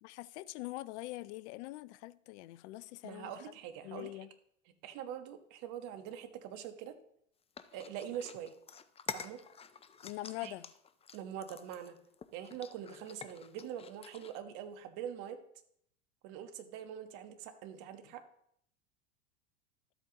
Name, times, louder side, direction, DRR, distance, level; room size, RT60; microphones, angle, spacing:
voice 1, 0.0-3.3 3.8-4.3 10.0-10.7, left 18 dB, 65° left, 0.6 m, -43 dB
voice 2, 3.0-4.1 4.8-7.0 7.7-8.5 9.1-9.4 10.4-10.5 11.1-12.0 12.3-15.4 16.2-18.2, right 9 dB, 55° right, 1.4 m, -44 dB
sound 1, 7.6-14.4, left 6 dB, 15° left, 0.5 m, -48 dB
13.0 x 8.2 x 3.0 m
hypercardioid pair, 95°, 37 cm